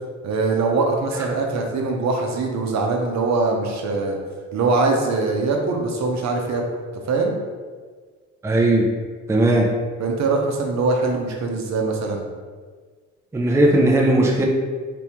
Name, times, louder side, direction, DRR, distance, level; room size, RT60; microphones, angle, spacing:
voice 1, 0.2-4.2 4.5-6.6 7.1-7.4 10.0-12.2, right 3 dB, 65° right, 1 dB, 0.8 m, -22 dB
voice 2, 8.4-8.9 9.3-9.7 13.3-14.5, right 1 dB, 10° right, 0 dB, 0.4 m, -17 dB
3.5 x 3.4 x 2.9 m, 1.5 s
cardioid pair, 90°, 30 cm